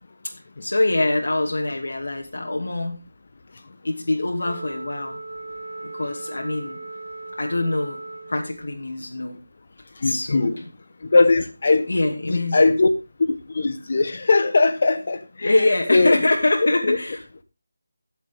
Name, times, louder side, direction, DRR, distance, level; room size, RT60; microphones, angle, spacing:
voice 1, 0.6-3.0 3.8-5.2 5.8-6.8 7.4-8.0 8.3-9.4 10.0-10.7 11.9-12.7 15.4-17.4, left 2 dB, 80° left, 0 dB, 2.6 m, -24 dB
Wind instrument woodwind instrument, 4.4-8.8, right 2 dB, 80° right, 1.8 m, -37 dB
voice 2, 10.0-10.6 11.1-11.8 12.3-12.9 13.3-15.6 15.9-16.2 16.8-17.0, left 3 dB, 40° left, 10 dB, 1.3 m, -19 dB
17.5 x 7.3 x 3.7 m, 0.27 s
figure-of-eight pair, 175°, 0 cm